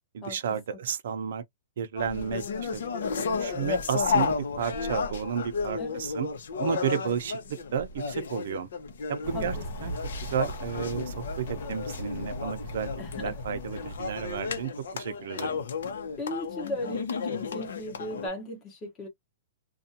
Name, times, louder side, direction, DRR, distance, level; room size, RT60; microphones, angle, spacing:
voice 1, 0.1-1.4 1.8-2.8 3.4-6.3 6.6-8.7 9.1-9.5 9.8-9.9 10.2-12.9 13.2-15.6, right 8 dB, 60° right, 0.6 m, -32 dB
sound 1, 2.0-18.3, left 5 dB, 75° left, 0.8 m, -33 dB
sound 2, 9.2-14.6, left 1 dB, 50° left, 1.0 m, -38 dB
voice 2, 13.0-13.4 16.2-19.1, left 1 dB, 15° left, 1.0 m, -36 dB
2.5 x 2.4 x 2.7 m
hypercardioid pair, 170°, 0 cm